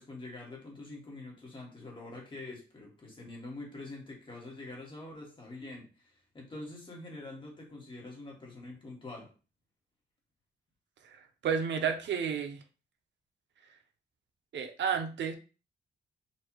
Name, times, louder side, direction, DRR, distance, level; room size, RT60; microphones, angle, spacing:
voice 1, 0.0-9.3, left 2 dB, 25° left, -1 dB, 1.5 m, -45 dB
voice 2, 11.4-12.6 14.5-15.3, right 7 dB, 90° right, 6 dB, 0.7 m, -31 dB
4.3 x 2.6 x 4.5 m, 0.34 s
wide cardioid pair, 165°, 18 cm